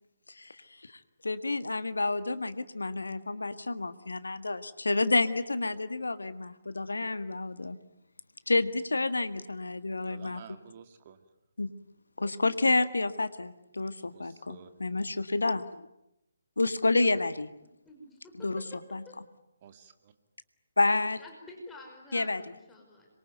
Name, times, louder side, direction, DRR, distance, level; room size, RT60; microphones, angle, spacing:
voice 1, 1.2-7.8 8.5-10.4 11.6-11.7 12.2-15.9 16.6-17.5 18.4-18.6 18.9-19.0 20.8-21.2 22.1-22.4, left 2 dB, 70° left, 12 dB, 1.8 m, -29 dB
voice 2, 10.1-11.2 14.1-14.7 19.6-20.1, right 8 dB, 30° right, 8 dB, 2.4 m, -51 dB
voice 3, 17.9-18.8 19.1-19.2 21.2-23.1, left 2 dB, 5° left, 0 dB, 5.3 m, -49 dB
26.0 x 23.5 x 9.4 m, 0.85 s
figure-of-eight pair, 140°, 0 cm